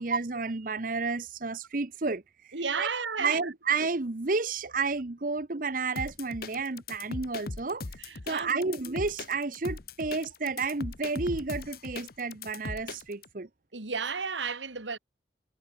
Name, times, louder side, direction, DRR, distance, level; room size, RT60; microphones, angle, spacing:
voice 1, 0.0-2.9 3.2-7.9 8.3-13.5, right 4 dB, 45° right, 0.9 m, -31 dB
voice 2, 2.5-3.5 8.0-8.8 13.7-15.0, right 5 dB, 80° right, 2.1 m, -33 dB
sound 1, 6.0-13.3, left 3 dB, 55° left, 1.0 m, -39 dB
head